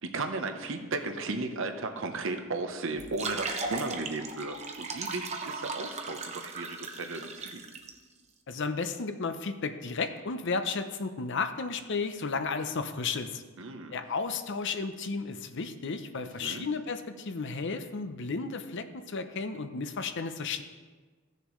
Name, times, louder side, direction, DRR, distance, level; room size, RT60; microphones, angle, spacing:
voice 1, 0.0-7.6 13.6-14.0 16.4-16.7, right 3 dB, 65° right, 5 dB, 0.9 m, -35 dB
sound 1, 3.0-7.9, right 3 dB, 30° right, 0.8 m, -37 dB
voice 2, 8.5-13.4 13.9-20.6, left 4 dB, 60° left, 8 dB, 0.7 m, -33 dB
16.5 x 6.7 x 3.1 m, 1.4 s
head